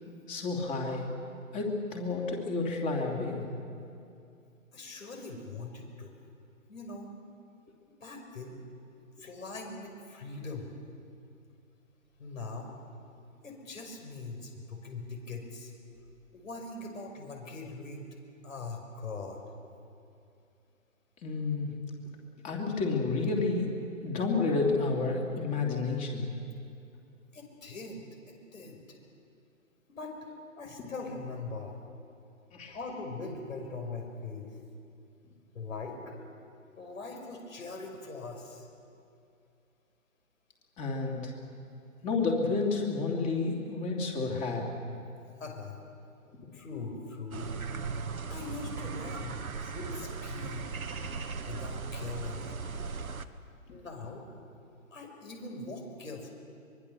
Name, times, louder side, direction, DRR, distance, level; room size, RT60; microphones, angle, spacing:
voice 1, 0.3-1.1 1.5-3.5 21.2-21.7 22.4-23.7 24.0-26.3 32.5-32.8 40.8-41.3 42.0-44.7, left 3 dB, 20° left, 1 dB, 3.0 m, -30 dB
voice 2, 4.7-6.1 6.7-7.1 8.0-8.6 9.2-10.7 12.2-12.7 13.4-15.7 16.3-18.0 18.4-19.4 27.3-29.0 30.0-30.1 30.6-31.8 32.7-34.5 35.5-36.1 36.8-38.7 45.4-45.8 46.5-47.5 48.3-50.7 51.5-52.5 53.7-54.3 54.9-56.3, left 3 dB, 70° left, 3 dB, 5.6 m, -41 dB
sound 1, 47.3-53.2, right 4 dB, 80° right, 1.4 m, -38 dB
24.0 x 22.5 x 6.9 m, 2.5 s
figure-of-eight pair, 135°, 42 cm